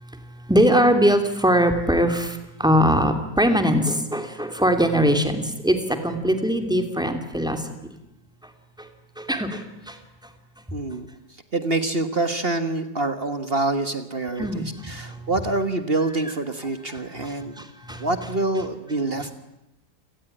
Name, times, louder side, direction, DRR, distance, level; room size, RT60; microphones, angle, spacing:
voice 1, 0.5-5.8 6.0-7.6 9.2-9.6 14.4-14.7 17.9-18.0, equal, ahead, 6 dB, 2.7 m, -20 dB
voice 2, 10.7-11.1 11.5-17.6 18.0-19.3, right 2 dB, 35° right, 9 dB, 1.6 m, -26 dB
28.5 x 18.0 x 10.0 m, 0.92 s
omnidirectional pair, 1.9 m